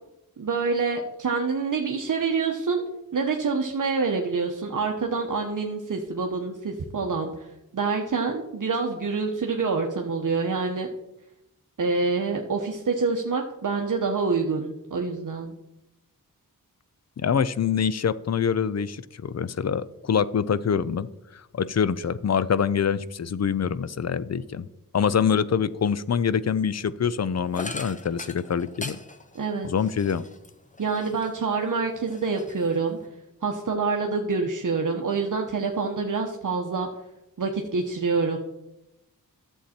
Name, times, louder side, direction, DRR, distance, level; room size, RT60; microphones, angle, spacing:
voice 1, 0.4-2.8 3.1-7.5 7.7-10.9 11.8-15.5 29.3-29.7 30.8-33.0 33.4-36.9 37.4-38.4, right 4 dB, 60° right, 2 dB, 1.0 m, -26 dB
voice 2, 17.2-21.1 21.5-24.7 24.9-29.0 29.6-30.3, left 7 dB, 45° left, 16 dB, 0.5 m, -25 dB
sound 1, 27.5-31.5 31.9-33.1, left 2 dB, 20° left, 0.9 m, -40 dB
11.5 x 7.4 x 4.3 m, 0.91 s
wide cardioid pair, 90°, 36 cm